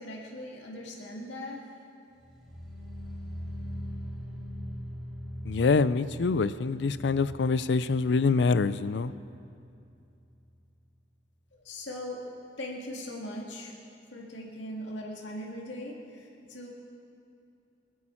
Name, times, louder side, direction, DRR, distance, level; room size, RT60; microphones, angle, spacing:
voice 1, 0.0-1.6 11.6-12.2 12.6-13.7 14.1-16.7, left 1 dB, 85° left, -2 dB, 2.0 m, -39 dB
sound 1, 2.1-9.3 9.5-10.0 10.3-10.4, equal, ahead, 3.1 m, -41 dB
voice 2, 5.5-9.1, left 4 dB, 70° left, 15 dB, 0.4 m, -25 dB
25.0 x 8.5 x 4.4 m, 2.6 s
head